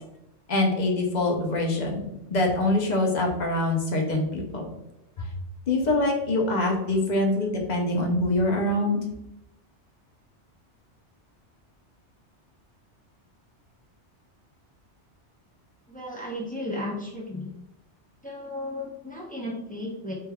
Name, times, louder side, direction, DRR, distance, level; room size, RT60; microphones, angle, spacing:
voice 1, 0.5-2.0 2.3-4.7 5.2-5.3 5.7-9.1, left 2 dB, 45° left, 1 dB, 0.7 m, -24 dB
voice 2, 15.9-17.5 18.2-20.1, left 1 dB, 10° left, -4 dB, 0.5 m, -34 dB
3.4 x 3.3 x 2.2 m, 0.87 s
omnidirectional pair, 1.2 m